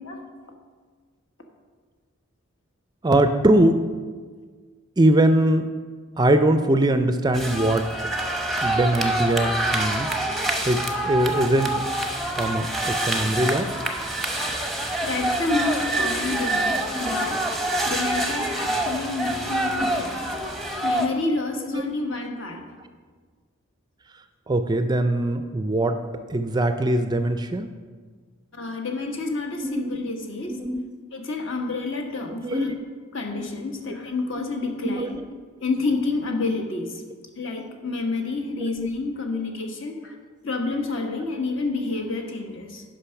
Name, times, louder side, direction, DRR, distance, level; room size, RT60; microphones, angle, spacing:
voice 1, 3.0-3.8 5.0-5.7 6.2-7.9 8.6-10.1 10.6-10.8 11.0-11.7 12.3-13.7 16.9-17.1 18.7-18.8 19.8-19.9 21.7-21.8 24.5-26.0 26.3-27.7 29.6-29.8 30.5-30.8 32.4-32.7 33.9-34.0 34.4-34.5 34.8-35.1 38.6-38.7, right 1 dB, 20° right, 9 dB, 0.4 m, -21 dB
sound 1, 7.3-21.1, right 1 dB, ahead, 0.7 m, -26 dB
voice 2, 15.0-17.4 17.8-20.2 20.8-22.6 28.5-30.5 31.1-32.7 33.1-35.2 35.6-37.0 37.4-40.1 40.4-42.8, left 3 dB, 60° left, 3 dB, 1.2 m, -29 dB
10.0 x 5.4 x 5.8 m, 1.5 s
head